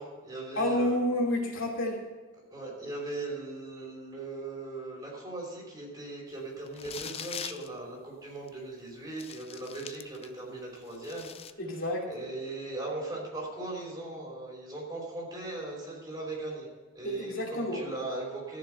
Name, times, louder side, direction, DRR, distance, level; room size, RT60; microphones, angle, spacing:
voice 1, 0.0-0.9 2.5-11.3 12.1-16.7 16.9-18.6, right 2 dB, 20° right, -3 dB, 5.1 m, -39 dB
voice 2, 0.6-2.0 11.6-12.0 17.0-17.8, left 1 dB, 65° left, -1 dB, 2.9 m, -29 dB
sound 1, 6.7-7.7 8.5-8.6 9.1-10.4 10.8-11.5, left 8 dB, 30° left, 0.5 m, -42 dB
14.5 x 6.9 x 7.9 m, 1.4 s
head